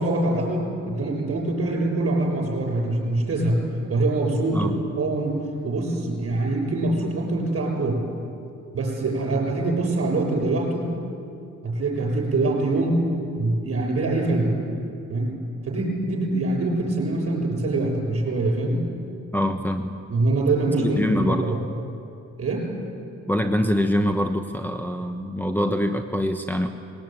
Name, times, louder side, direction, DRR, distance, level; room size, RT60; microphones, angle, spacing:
voice 1, 0.0-3.6 3.9-4.7 5.0-8.0 8.7-10.9 11.6-14.5 15.1-15.3 15.6-18.8 20.1-21.6 22.4-22.7, right 2 dB, 50° right, 1 dB, 7.0 m, -24 dB
voice 2, 19.3-19.9 20.8-21.6 23.3-26.7, left 1 dB, 5° left, 4 dB, 1.1 m, -24 dB
20.5 x 18.0 x 9.3 m, 2.6 s
cardioid pair, 90°, 30 cm